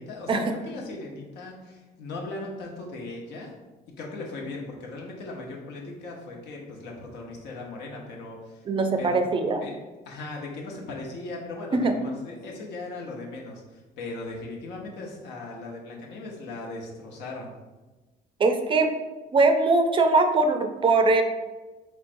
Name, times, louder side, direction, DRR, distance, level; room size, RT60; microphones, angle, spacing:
voice 1, 0.0-3.5 4.0-8.6 9.0-9.2 9.6-9.7 10.0-17.5, left 2 dB, 80° left, -1 dB, 0.9 m, -38 dB
voice 2, 8.7-9.6 11.7-11.9 18.4-18.9 19.3-21.2, right 3 dB, 30° right, 6 dB, 0.4 m, -21 dB
4.5 x 3.2 x 2.6 m, 1.2 s
cardioid pair, 110°, 17 cm